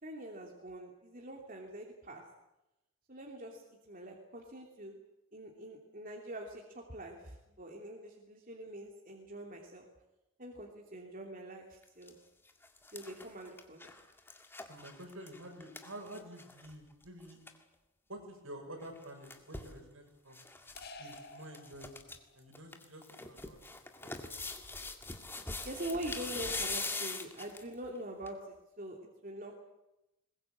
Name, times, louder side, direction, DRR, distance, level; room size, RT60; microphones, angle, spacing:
voice 1, 0.0-2.2 3.1-5.0 5.3-9.9 10.4-12.2 12.9-13.9 25.6-29.0 29.2-29.6, right 1 dB, 40° right, 0 dB, 3.0 m, -44 dB
sound 1, 11.8-12.1 12.5-16.7 17.0-17.1 17.3-17.6 18.8-19.7 20.3-20.8 21.1-21.2 21.5-22.2 22.5-27.7 28.3-28.4, left 3 dB, 10° left, 1.9 m, -42 dB
voice 2, 14.7-17.4 18.1-20.4 21.0-23.6 24.0-24.4 24.7-24.8, right 1 dB, 70° right, 3 dB, 6.5 m, -49 dB
sound 2, 20.8-22.4, left 2 dB, 45° left, 2.1 m, -51 dB
21.0 x 21.0 x 8.8 m, 0.92 s
head